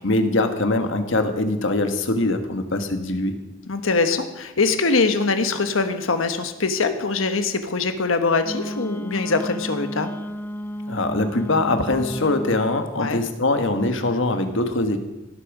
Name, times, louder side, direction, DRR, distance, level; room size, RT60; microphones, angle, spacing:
voice 1, 0.0-3.4 10.9-15.0, left 2 dB, 65° left, 7 dB, 1.5 m, -22 dB
voice 2, 3.7-10.1 13.0-13.2, left 4 dB, 85° left, 8 dB, 1.3 m, -23 dB
Wind instrument woodwind instrument, 8.4-12.8, equal, 10° left, 0.8 m, -32 dB
17.0 x 8.8 x 6.1 m, 1.0 s
head